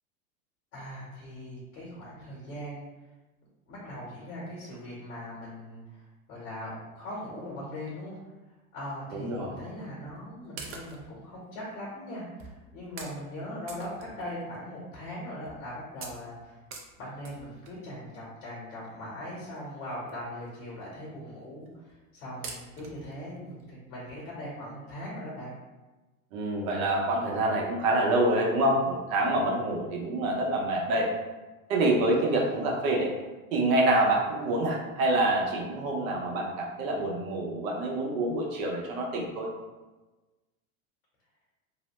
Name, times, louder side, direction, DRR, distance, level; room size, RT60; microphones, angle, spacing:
voice 1, 0.7-2.9 3.7-8.2 8.7-16.6 17.0-25.6 32.3-32.6, equal, 70° left, -6 dB, 1.2 m, -40 dB
voice 2, 9.1-9.6 26.3-31.1 31.7-33.1 33.5-39.5, right 1 dB, 70° right, -1 dB, 0.7 m, -26 dB
sound 1, 10.1-10.2 10.6-11.2 11.9-12.0 12.4-12.6 13.0-13.2 13.7-14.6 15.0-15.1 15.5-15.7 16.0-17.9 18.8-18.9 19.6-19.7 19.9-20.1 20.5-20.6 20.8-20.9 21.7-22.0 22.4-23.1 23.6-23.7 24.1-24.2, right 4 dB, 35° right, 0.4 m, -44 dB
2.7 x 2.0 x 3.0 m, 1.2 s
hypercardioid pair, 100°, 43 cm